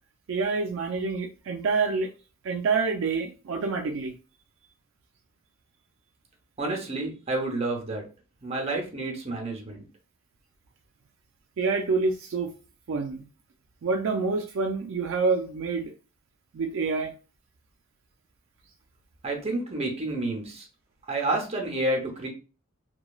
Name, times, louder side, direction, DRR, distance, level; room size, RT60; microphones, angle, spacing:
voice 1, 0.3-2.1 2.4-4.1 11.6-12.5 12.9-13.3 13.8-15.9 16.5-17.1, right 4 dB, 70° right, 3 dB, 0.4 m, -27 dB
voice 2, 6.6-8.0 8.4-9.8 19.2-20.7 21.1-22.3, right 2 dB, 30° right, 1 dB, 0.7 m, -29 dB
3.0 x 2.2 x 2.3 m, 0.35 s
head